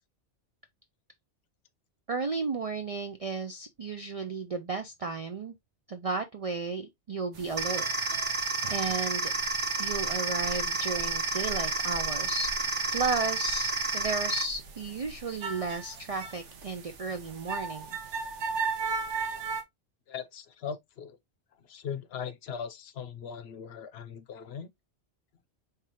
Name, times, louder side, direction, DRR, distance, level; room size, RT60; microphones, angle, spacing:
voice 1, 2.1-5.6 5.9-7.9 8.7-9.3 9.8-12.5 12.9-17.9, right 4 dB, 55° right, 0.4 m, -33 dB
sound 1, 7.3-19.6, right 4 dB, 90° right, 1.2 m, -39 dB
sound 2, 7.6-14.4, right 3 dB, 30° right, 0.7 m, -30 dB
voice 2, 20.1-21.2 21.6-24.7, left 7 dB, 70° left, 0.8 m, -39 dB
4.6 x 3.3 x 2.8 m
omnidirectional pair, 1.2 m